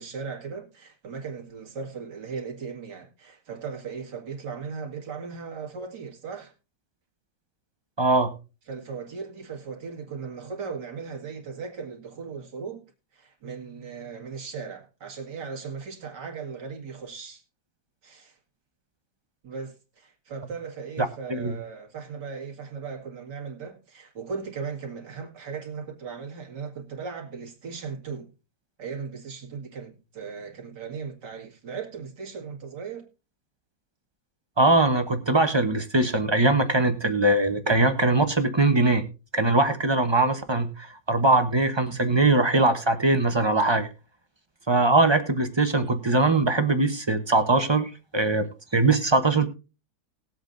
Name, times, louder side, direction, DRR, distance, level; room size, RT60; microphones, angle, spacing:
voice 1, 0.0-6.5 8.7-12.9 13.1-17.4 18.0-18.4 19.4-28.3 28.8-33.1, right 5 dB, 85° right, 2.6 m, -37 dB
voice 2, 8.0-8.3 21.3-21.5 34.6-39.0 39.3-43.9 44.7-48.5 48.7-49.5, right 2 dB, 20° right, 0.8 m, -21 dB
19.5 x 8.0 x 2.6 m
omnidirectional pair, 1.8 m